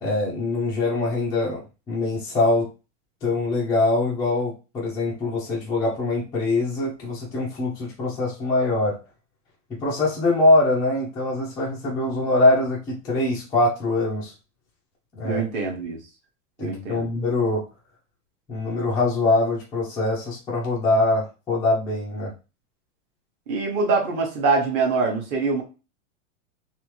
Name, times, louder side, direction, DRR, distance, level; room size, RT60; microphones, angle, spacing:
voice 1, 0.0-2.7 3.2-9.0 9.8-14.3 15.2-15.4 16.6-17.6 18.5-22.3, left 2 dB, 10° left, -6 dB, 0.4 m, -23 dB
voice 2, 15.2-16.0 16.6-17.1 23.5-25.6, right 4 dB, 30° right, 1 dB, 0.8 m, -24 dB
3.4 x 2.4 x 3.0 m, 0.30 s
supercardioid pair, 165°, 38 cm